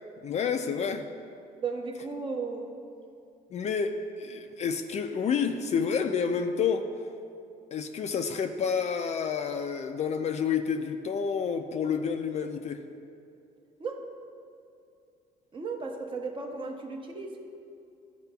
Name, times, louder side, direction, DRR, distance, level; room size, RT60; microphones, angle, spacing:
voice 1, 0.2-1.1 3.5-6.9 7.7-12.8, left 6 dB, 40° left, 6 dB, 0.4 m, -29 dB
voice 2, 1.6-2.8 13.8-14.1 15.5-17.3, right 4 dB, 30° right, 2 dB, 0.8 m, -35 dB
11.5 x 4.9 x 2.3 m, 2.5 s
cardioid pair, 110°, 17 cm